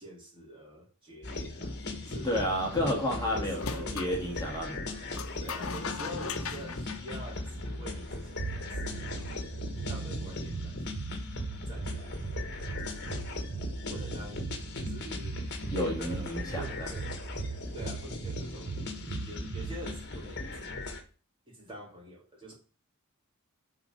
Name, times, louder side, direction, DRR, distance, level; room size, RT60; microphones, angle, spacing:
voice 1, 0.0-1.8 2.0-2.4 2.8-4.1 5.4-9.2 9.9-10.9 11.7-13.3 13.9-14.5 14.7-17.1 17.7-18.9 19.3-20.8 21.5-22.5, right 1 dB, 25° right, 2.5 m, -46 dB
sound 1, 1.2-21.0, left 2 dB, 50° left, 1.5 m, -38 dB
voice 2, 2.2-5.0 15.7-16.9, equal, 20° left, 1.9 m, -31 dB
sound 2, 3.6-4.2 5.1-7.9, left 6 dB, 75° left, 0.8 m, -39 dB
sound 3, 7.3-20.0, right 4 dB, 55° right, 0.6 m, -40 dB
9.8 x 4.0 x 6.5 m
head